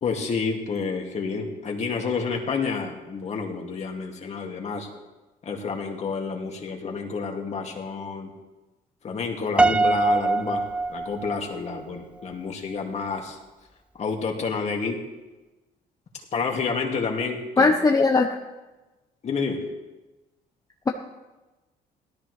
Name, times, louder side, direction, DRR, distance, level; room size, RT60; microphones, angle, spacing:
voice 1, 0.0-4.9 5.4-8.3 9.0-13.4 14.0-15.0 16.3-17.7 19.2-19.6, left 5 dB, 40° left, 1 dB, 2.2 m, -29 dB
Piano, 9.6-11.8, right 3 dB, 5° right, 0.3 m, -23 dB
voice 2, 17.6-18.4, left 3 dB, 20° left, 3 dB, 0.9 m, -19 dB
17.0 x 13.0 x 3.2 m, 1.1 s
cardioid pair, 110°, 17 cm